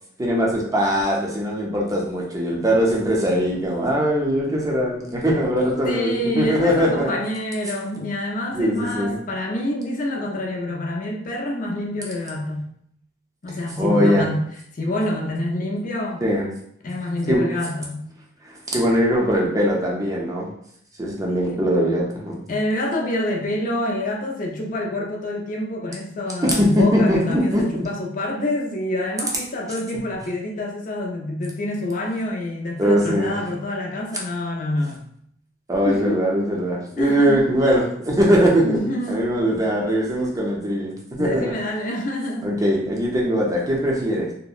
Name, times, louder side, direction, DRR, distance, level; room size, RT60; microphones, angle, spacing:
voice 1, 0.2-7.1 8.5-9.2 13.8-14.3 16.2-16.5 17.3-17.5 18.7-20.5 21.0-22.4 26.4-27.9 32.8-33.3 35.7-38.8 39.1-41.5 42.4-44.3, equal, 20° right, -2 dB, 0.5 m, -21 dB
voice 2, 5.8-12.7 13.4-14.4 14.7-16.2 16.8-18.0 21.3-21.7 22.5-35.0 35.8-36.2 36.7-37.5 38.6-39.3 41.2-42.5, left 1 dB, 45° left, 0 dB, 0.5 m, -27 dB
2.7 x 2.1 x 2.3 m, 0.68 s
head